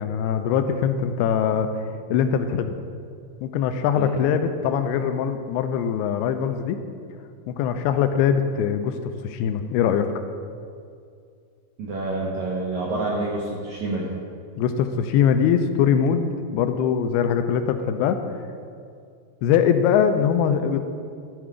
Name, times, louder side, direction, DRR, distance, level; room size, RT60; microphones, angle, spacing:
voice 1, 0.0-1.7 2.1-2.7 3.4-6.8 7.5-10.1 14.6-18.2 19.4-20.8, left 8 dB, 85° left, 8 dB, 2.5 m, -22 dB
voice 2, 11.8-14.1, right 2 dB, 85° right, -4 dB, 1.6 m, -28 dB
12.5 x 4.6 x 5.0 m, 2.3 s
omnidirectional pair, 4.7 m